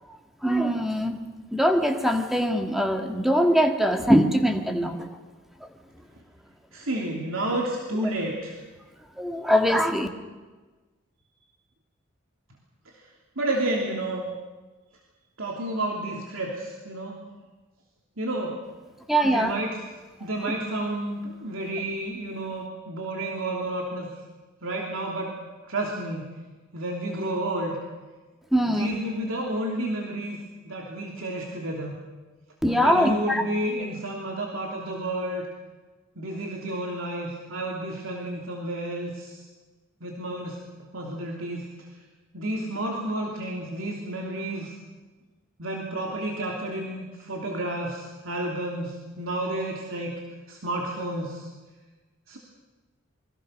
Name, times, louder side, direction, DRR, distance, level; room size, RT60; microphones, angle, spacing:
voice 1, 0.4-1.2 1.5-5.1 9.2-10.1 19.1-19.5 28.5-29.0 32.6-33.4, equal, ahead, 4 dB, 2.0 m, -22 dB
voice 2, 6.7-8.5 13.4-14.3 15.4-17.2 18.2-18.6 19.2-19.8 20.2-24.1 24.6-25.4 25.6-26.3 26.7-27.8 28.6-30.4 30.6-32.0 32.7-35.5 36.2-39.4 40.0-40.6 40.9-41.7 42.3-44.7 45.6-50.2 50.5-51.5 52.3-52.4, right 1 dB, 75° right, -1 dB, 3.0 m, -31 dB
28.0 x 22.5 x 6.5 m, 1.3 s
head